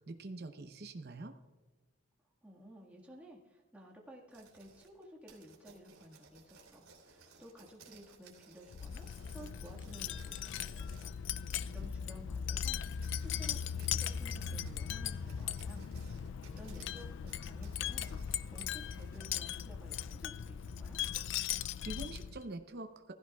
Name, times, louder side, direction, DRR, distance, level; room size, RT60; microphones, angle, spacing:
voice 1, 0.0-1.3 21.5-23.1, right 2 dB, 55° right, 5 dB, 0.8 m, -45 dB
voice 2, 2.4-12.8 13.2-15.9 16.5-18.1 18.5-21.0, equal, 5° right, -3 dB, 1.7 m, -55 dB
sound 1, 4.3-11.1 11.5-11.9 12.4-12.5 12.9-19.2, right 4 dB, 85° right, 3.2 m, -60 dB
Wind chime, 8.7-22.4, left 8 dB, 65° left, 0.4 m, -39 dB
sound 2, 9.2-10.4 12.3-17.7, right 1 dB, 30° right, 2.6 m, -65 dB
16.5 x 15.0 x 2.4 m, 1.2 s
head